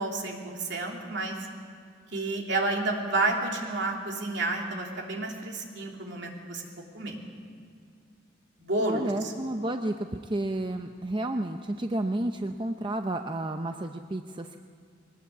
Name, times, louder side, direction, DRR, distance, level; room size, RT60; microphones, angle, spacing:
voice 1, 0.0-1.4 2.1-6.7 6.9-7.2 8.6-9.3, right 2 dB, 60° right, 0 dB, 3.1 m, -30 dB
voice 2, 8.8-14.6, right 1 dB, 25° right, 6 dB, 0.6 m, -31 dB
22.0 x 19.0 x 8.4 m, 2.3 s
head